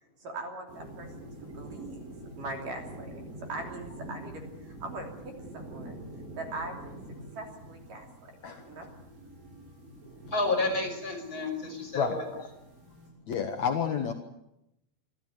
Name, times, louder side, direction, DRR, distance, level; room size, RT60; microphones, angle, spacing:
voice 1, 0.2-6.0 6.3-7.0 7.3-8.3 8.7-8.9, right 2 dB, 45° right, 3 dB, 4.2 m, -41 dB
sound 1, 0.7-13.1, right 1 dB, 75° right, 10.0 m, -46 dB
voice 2, 10.3-12.2, left 2 dB, 15° left, 2 dB, 6.0 m, -30 dB
voice 3, 11.9-12.5 13.3-14.1, left 6 dB, 85° left, 5 dB, 1.6 m, -30 dB
26.5 x 14.5 x 9.4 m, 0.84 s
omnidirectional pair, 5.8 m